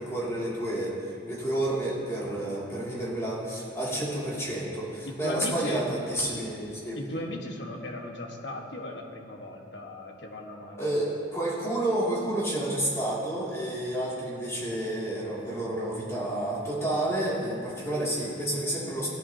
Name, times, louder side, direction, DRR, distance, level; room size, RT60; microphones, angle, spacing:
voice 1, 0.0-7.0 10.8-19.1, right 1 dB, 15° left, -8 dB, 2.5 m, -30 dB
voice 2, 5.0-5.8 7.0-11.0, left 1 dB, 85° left, 1 dB, 1.4 m, -37 dB
17.0 x 11.0 x 2.8 m, 2.5 s
head